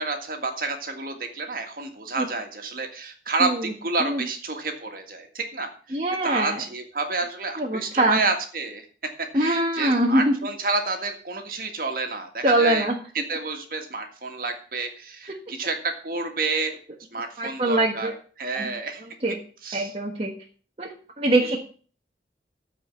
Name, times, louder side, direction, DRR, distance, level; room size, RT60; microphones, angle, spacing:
voice 1, 0.0-8.9 9.2-12.9 13.1-16.8 17.1-19.0 19.6-19.9, right 3 dB, 50° right, 5 dB, 1.9 m, -29 dB
voice 2, 5.9-6.6 7.6-8.2 9.3-10.3 12.4-12.9 17.4-18.1 18.5-18.7 19.2-19.3 19.7-20.3 20.8-20.9 21.2-21.6, right 1 dB, 35° right, 0 dB, 1.3 m, -22 dB
13.5 x 5.0 x 7.1 m, 0.42 s
head